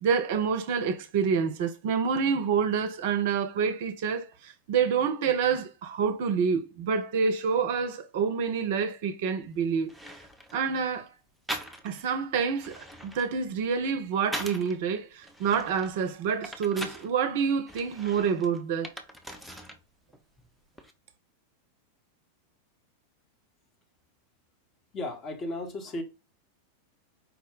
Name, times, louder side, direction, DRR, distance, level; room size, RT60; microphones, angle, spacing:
voice 1, 0.0-9.9 10.5-11.1 11.8-18.9, right 6 dB, 50° right, 0.6 m, -27 dB
sound 1, 9.4-9.5 9.9-10.6 11.5-12.1 12.5-14.8 15.2-17.1 17.7-19.8 20.1-20.9, equal, ahead, 0.6 m, -41 dB
voice 2, 24.9-26.0, left 2 dB, 30° left, 1.0 m, -34 dB
4.6 x 2.1 x 3.7 m
figure-of-eight pair, 90°, 0 cm